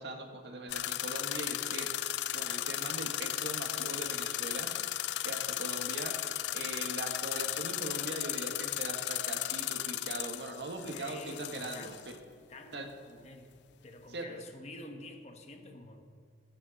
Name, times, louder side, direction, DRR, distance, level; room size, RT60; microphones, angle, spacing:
voice 1, 0.0-1.9 2.3-4.8 5.2-6.2 6.5-12.2 12.7-12.9 14.1-14.3, right 2 dB, 70° right, 3 dB, 1.6 m, -41 dB
sound 1, 0.7-12.2, left 14 dB, 75° left, 0.4 m, -35 dB
voice 2, 10.9-12.0 12.5-13.6 13.8-16.0, left 2 dB, 35° left, 5 dB, 1.1 m, -48 dB
21.0 x 8.5 x 4.2 m, 2.1 s
head